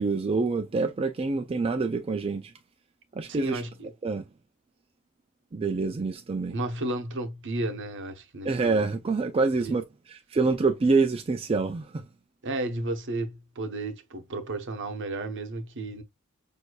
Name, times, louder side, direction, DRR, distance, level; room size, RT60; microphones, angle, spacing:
voice 1, 0.0-2.5 3.2-3.6 4.0-4.2 5.5-6.5 8.4-9.8 10.1-12.0, right 4 dB, 25° right, 0.4 m, -26 dB
voice 2, 3.3-3.9 6.5-8.9 9.6-9.7 12.4-16.0, right 2 dB, 60° right, 0.9 m, -33 dB
6.2 x 2.7 x 2.3 m
head